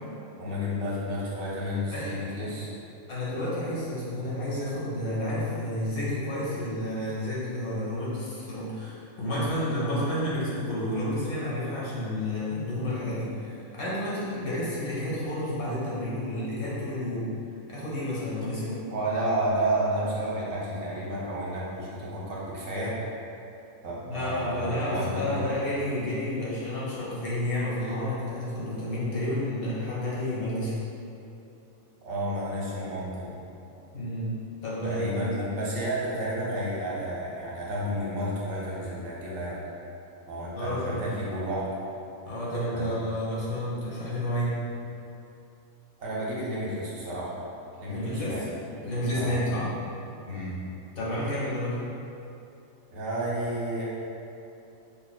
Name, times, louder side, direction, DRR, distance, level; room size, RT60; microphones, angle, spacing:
voice 1, 0.4-2.7 18.9-23.0 23.8-25.5 32.0-33.4 34.8-39.6 40.3-41.7 42.7-42.9 46.0-47.3 47.8-48.5 49.1-49.4 50.2-50.6 52.9-53.8, right 1 dB, 75° right, -6 dB, 1.2 m, -31 dB
voice 2, 3.1-17.3 17.7-18.8 24.0-30.7 33.9-34.3 34.6-35.3 40.5-41.1 42.2-44.6 47.9-48.5 48.8-49.7 51.0-51.8, left 1 dB, 85° left, -8 dB, 1.5 m, -30 dB
5.0 x 2.8 x 2.2 m, 2.8 s
omnidirectional pair, 1.4 m